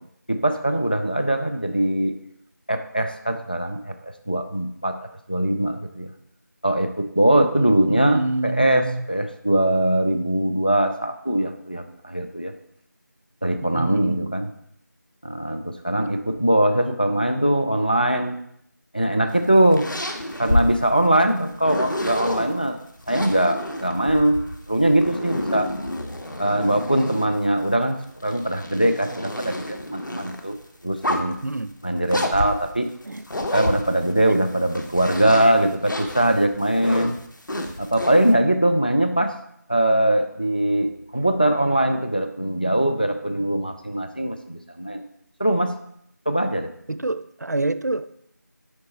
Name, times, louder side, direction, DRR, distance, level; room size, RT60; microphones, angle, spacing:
voice 1, 0.3-2.1 2.7-5.0 5.3-6.1 6.6-12.5 13.4-14.5 15.2-18.4 18.9-19.9 20.4-22.8 23.1-25.7 26.4-30.6 30.8-31.4 31.8-32.9 33.5-37.2 37.8-39.4 39.7-45.0 45.4-45.8 46.3-46.7, right 1 dB, 30° left, 7 dB, 0.3 m, -21 dB
voice 2, 7.4-9.1 13.6-14.3 31.4-31.8 33.1-33.2 46.9-48.2, right 2 dB, 60° right, 13 dB, 0.4 m, -28 dB
sound 1, 19.3-22.5 23.0-27.5 28.0-30.4 30.9-31.4 32.1-34.2 34.6-38.3, left 1 dB, 85° left, 0.9 m, -29 dB
5.2 x 4.6 x 4.1 m, 0.72 s
figure-of-eight pair, 175°, 10 cm